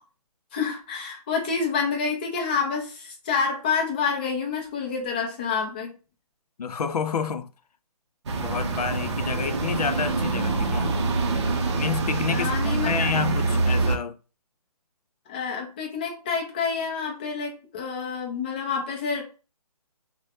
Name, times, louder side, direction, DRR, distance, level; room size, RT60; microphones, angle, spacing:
voice 1, 0.5-5.9 12.3-13.1 15.3-19.2, left 5 dB, 15° left, 0.4 m, -28 dB
voice 2, 6.6-7.5 8.4-10.9 11.8-14.2, left 6 dB, 80° left, 0.4 m, -29 dB
sound 1, 8.3-14.0, right 3 dB, 45° right, 0.6 m, -25 dB
3.2 x 2.1 x 2.6 m
hypercardioid pair, 155°, 20 cm